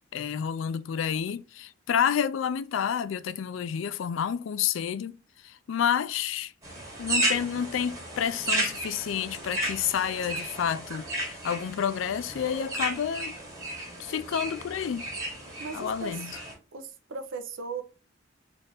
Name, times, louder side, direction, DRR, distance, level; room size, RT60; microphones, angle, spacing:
voice 1, 0.1-6.5 7.0-13.3 14.0-15.0 15.7-16.4, left 8 dB, 75° left, 0.3 m, -29 dB
sound 1, 6.6-16.5, right 1 dB, 20° right, 1.3 m, -33 dB
voice 2, 15.6-16.4 16.7-17.8, right 4 dB, 80° right, 0.7 m, -37 dB
4.1 x 2.5 x 3.4 m
head